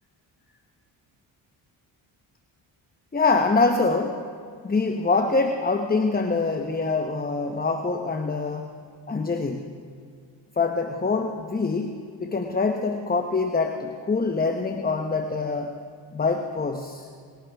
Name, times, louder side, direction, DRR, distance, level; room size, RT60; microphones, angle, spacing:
voice 1, 3.1-4.2 4.6-8.8 9.1-9.7 10.6-15.7 16.1-17.1, left 3 dB, 20° left, 5 dB, 0.8 m, -25 dB
19.5 x 16.5 x 3.4 m, 2.1 s
cardioid pair, 65°, 48 cm